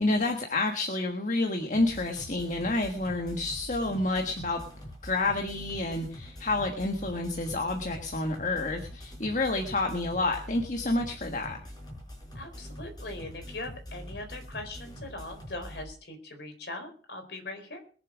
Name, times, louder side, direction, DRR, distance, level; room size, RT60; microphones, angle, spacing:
voice 1, 0.0-4.7 5.0-11.6, left 2 dB, 45° left, 4 dB, 1.4 m, -29 dB
sound 1, 1.7-15.8, equal, 20° left, 5.7 m, -44 dB
voice 2, 12.3-17.8, left 2 dB, 60° left, 5 dB, 4.2 m, -40 dB
21.5 x 7.4 x 6.2 m, 0.42 s
head